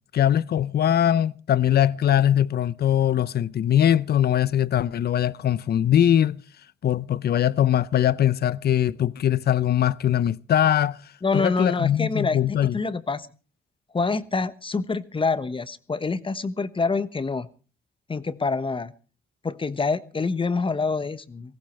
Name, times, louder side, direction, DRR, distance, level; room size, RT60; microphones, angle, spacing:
voice 1, 0.1-6.4 6.8-11.0 11.3-12.8, left 10 dB, 55° left, 0.7 m, -21 dB
voice 2, 11.2-13.3 13.9-17.5 18.1-18.9 19.4-21.6, left 4 dB, 25° left, 1.2 m, -26 dB
18.5 x 15.5 x 4.5 m
cardioid pair, 90°, 20 cm